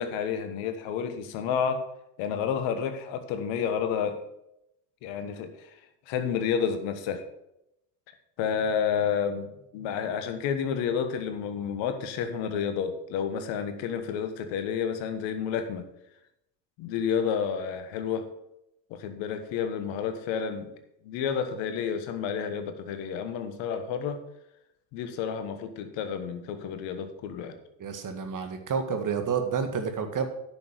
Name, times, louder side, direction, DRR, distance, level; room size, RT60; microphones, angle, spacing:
voice 1, 0.0-1.9 2.2-4.2 5.0-5.7 6.1-7.2 8.4-15.8 16.8-18.3 18.9-20.7 21.0-24.2 24.9-27.6, left 7 dB, 65° left, 9 dB, 1.4 m, -30 dB
voice 2, 27.8-30.3, right 6 dB, 40° right, 6 dB, 1.9 m, -29 dB
10.5 x 6.5 x 6.7 m, 0.84 s
hypercardioid pair, 65°, 48 cm